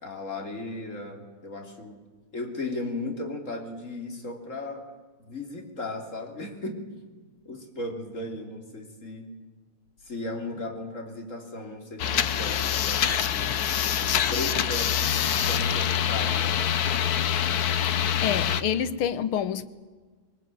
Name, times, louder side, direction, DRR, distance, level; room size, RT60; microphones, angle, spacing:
voice 1, 0.0-2.0 2.3-4.9 5.3-6.8 7.5-9.3 10.0-13.5 14.0-16.6, left 2 dB, 35° left, 3.5 m, -36 dB
sound 1, 12.0-18.6, left 9 dB, 55° left, 1.2 m, -25 dB
voice 2, 17.9-19.7, left 9 dB, 80° left, 1.9 m, -28 dB
22.5 x 19.5 x 9.3 m
omnidirectional pair, 2.3 m